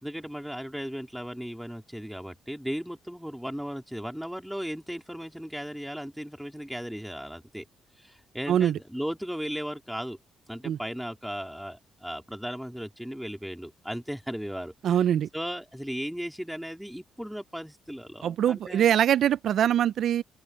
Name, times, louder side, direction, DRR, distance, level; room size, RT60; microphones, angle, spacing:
voice 1, 0.0-7.7 8.0-10.2 10.5-15.1 15.3-18.9, equal, ahead, 3.6 m, -36 dB
voice 2, 8.5-8.8 10.6-10.8 14.8-15.3 18.2-20.2, right 10 dB, 70° right, 0.4 m, -23 dB
open air
cardioid pair, 90°, 0 cm